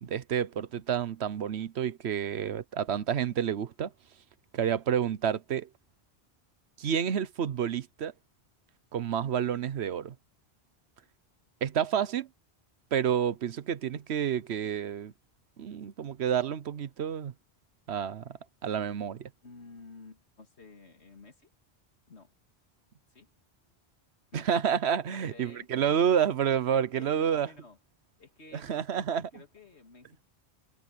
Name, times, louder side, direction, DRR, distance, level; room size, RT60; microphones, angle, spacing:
voice 1, 0.0-3.9 4.5-5.7 6.8-8.1 8.9-10.2 11.6-12.3 12.9-15.1 15.6-17.3 17.9-19.3 24.3-27.5 28.5-29.4, right 8 dB, 80° right, 1.1 m, -29 dB
voice 2, 19.4-21.5 22.1-22.3 23.1-23.3 24.3-24.5 25.1-26.1 26.7-27.8 28.2-30.2, left 3 dB, 90° left, 2.8 m, -52 dB
omnidirectional pair, 1.1 m